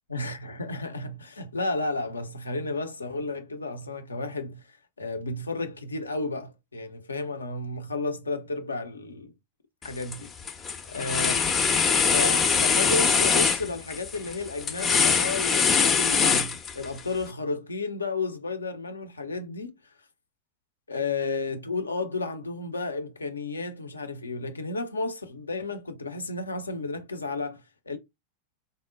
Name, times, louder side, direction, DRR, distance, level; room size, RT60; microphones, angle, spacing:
voice 1, 0.1-9.3 9.8-10.3 10.9-11.3 12.0-19.8 20.9-28.0, left 3 dB, 75° left, 0.5 m, -32 dB
sound 1, 9.8-10.2 10.5-17.0, left 6 dB, 20° left, 0.5 m, -23 dB
3.7 x 2.0 x 2.4 m
figure-of-eight pair, 90°, 0 cm